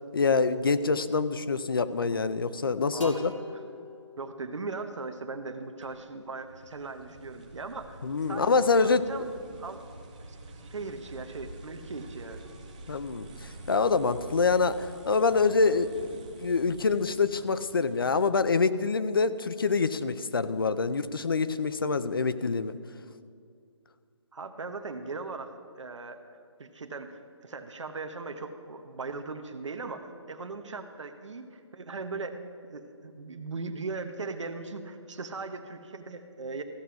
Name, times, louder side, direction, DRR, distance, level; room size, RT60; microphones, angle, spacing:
voice 1, 0.1-3.3 8.0-9.0 12.9-22.8, left 4 dB, 50° left, 14 dB, 0.5 m, -26 dB
voice 2, 2.9-3.2 4.2-8.0 8.3-9.3 9.6-9.8 10.3-12.4 24.3-26.2 26.6-32.4 32.7-36.6, right 3 dB, 75° right, 6 dB, 1.0 m, -39 dB
sound 1, 3.0-6.6, left 4 dB, 90° left, 2.0 m, -49 dB
sound 2, 5.8-18.5, right 2 dB, 15° right, 0.7 m, -48 dB
14.5 x 5.7 x 7.7 m, 2.3 s
hypercardioid pair, 175°, 16 cm